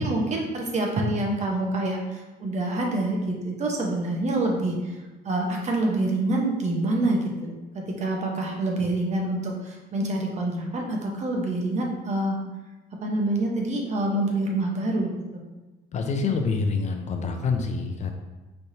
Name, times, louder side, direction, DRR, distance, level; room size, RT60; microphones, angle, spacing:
voice 1, 0.0-5.0 5.2-12.4 13.0-15.1, right 2 dB, 45° right, 0 dB, 1.0 m, -26 dB
voice 2, 15.9-18.1, left 4 dB, 45° left, 4 dB, 0.6 m, -26 dB
5.5 x 3.3 x 2.7 m, 1.2 s
cardioid pair, 110°, 17 cm